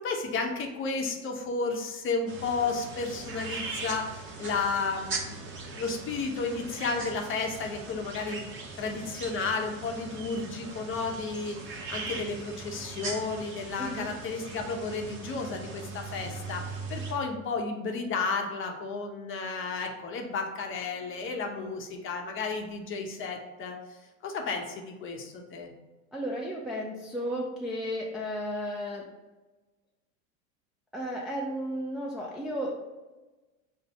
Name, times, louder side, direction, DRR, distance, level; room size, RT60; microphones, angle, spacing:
voice 1, 0.0-8.5 8.8-11.6 11.9-25.7, left 4 dB, 30° left, 3 dB, 0.7 m, -33 dB
sound 1, 2.3-17.1, right 3 dB, 30° right, 0.8 m, -40 dB
voice 2, 13.8-14.1 26.1-29.1 30.9-32.7, equal, ahead, -4 dB, 0.4 m, -33 dB
5.3 x 2.0 x 4.0 m, 1.2 s
hypercardioid pair, 100°, 42 cm